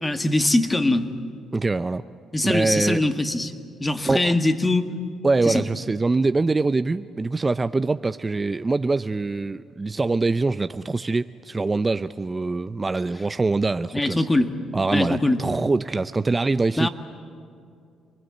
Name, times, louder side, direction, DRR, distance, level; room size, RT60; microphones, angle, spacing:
voice 1, 0.0-1.1 2.3-3.5 3.8-4.9 5.5-5.6 13.9-14.5 14.9-15.5 16.8-16.9, left 2 dB, 20° left, 7 dB, 1.8 m, -22 dB
voice 2, 1.5-2.0 2.4-3.0 4.0-4.3 5.2-14.3 14.7-16.9, right 3 dB, 25° right, 12 dB, 0.5 m, -24 dB
28.0 x 20.5 x 8.4 m, 2.4 s
supercardioid pair, 60°, 0 cm